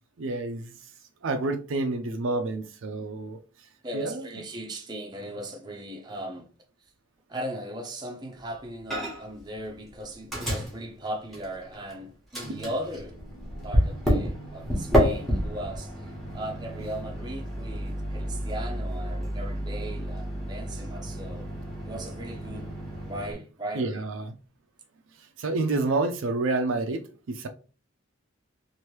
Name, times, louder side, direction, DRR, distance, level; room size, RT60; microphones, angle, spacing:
voice 1, 0.2-0.7 1.2-3.4 3.9-4.3 23.7-24.3 25.4-27.5, right 3 dB, 65° right, 0.4 m, -28 dB
voice 2, 3.8-6.5 7.3-13.2 13.6-21.5 21.8-22.7 23.1-24.1, equal, 20° right, 0.6 m, -38 dB
Microwave oven, 8.9-9.4 9.7-11.9 12.3-23.3, equal, ahead, 1.0 m, -30 dB
2.9 x 2.6 x 3.1 m
head